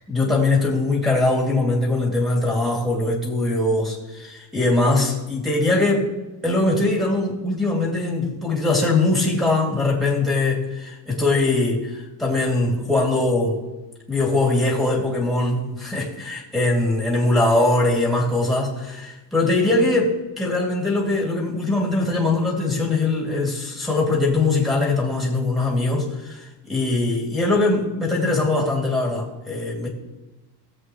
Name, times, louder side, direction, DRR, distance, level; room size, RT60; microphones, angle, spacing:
voice 1, 0.1-6.1 6.4-13.6 14.1-29.9, left 2 dB, ahead, -4 dB, 2.6 m, -21 dB
19.5 x 8.0 x 3.1 m, 1.1 s
cardioid pair, 150°, 42 cm